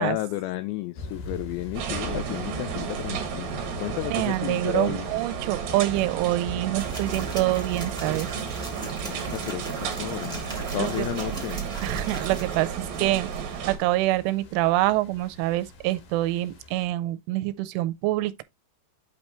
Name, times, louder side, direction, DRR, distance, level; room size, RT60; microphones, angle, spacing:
voice 1, 0.0-5.1 9.0-11.6, left 16 dB, 85° left, 2.5 m, -32 dB
sound 1, 0.9-16.9, left 2 dB, 65° left, 2.0 m, -42 dB
sound 2, 1.7-13.8, right 8 dB, 60° right, 2.5 m, -33 dB
voice 2, 4.1-8.3 10.8-11.1 11.8-18.4, right 17 dB, 85° right, 3.0 m, -26 dB
sound 3, 6.8-13.7, right 3 dB, ahead, 0.8 m, -39 dB
8.5 x 3.3 x 4.3 m
omnidirectional pair, 5.7 m